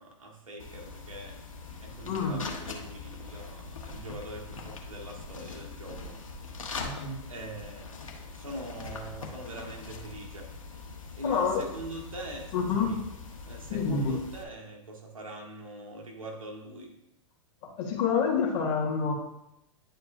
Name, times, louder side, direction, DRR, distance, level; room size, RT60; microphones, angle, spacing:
voice 1, 0.0-1.4 1.8-6.2 7.3-8.0 8.3-10.5 11.1-12.9 13.4-16.9, right 1 dB, 85° right, -1 dB, 1.7 m, -42 dB
sound 1, 0.6-14.4, left 4 dB, 80° left, 1.2 m, -42 dB
voice 2, 2.0-2.4 6.8-7.2 11.2-11.6 12.5-12.9 13.7-14.2 17.6-19.1, left 6 dB, 45° left, -1 dB, 2.3 m, -28 dB
10.5 x 4.6 x 2.6 m, 0.85 s
hypercardioid pair, 105°, 17 cm